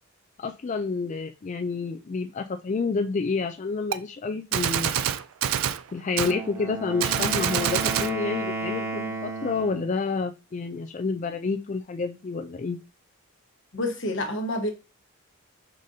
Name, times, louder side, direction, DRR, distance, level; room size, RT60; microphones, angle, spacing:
voice 1, 0.4-4.9 5.9-12.8, left 4 dB, 35° left, 0.3 m, -29 dB
Gunshot gunfire, 3.9-4.0 4.5-5.8 6.2-6.4 7.0-8.1, right 9 dB, 65° right, 0.3 m, -26 dB
Wind instrument woodwind instrument, 6.1-9.9, right 2 dB, 15° right, 1.0 m, -33 dB
voice 2, 13.7-14.7, left 1 dB, 55° left, 1.1 m, -28 dB
4.9 x 3.9 x 2.7 m
head